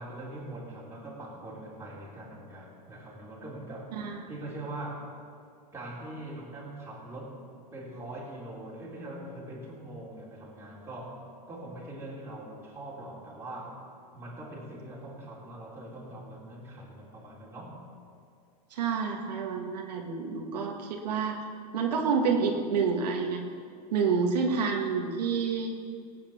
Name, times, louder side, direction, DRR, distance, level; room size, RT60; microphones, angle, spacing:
voice 1, 0.0-5.1 5.7-7.4 7.7-13.8 14.1-17.8, right 1 dB, 10° right, -6 dB, 4.0 m, -42 dB
voice 2, 18.7-21.4 21.7-23.4 23.9-25.7, right 5 dB, 85° right, 1 dB, 1.7 m, -28 dB
17.5 x 8.8 x 6.0 m, 2.3 s
supercardioid pair, 130°, 20 cm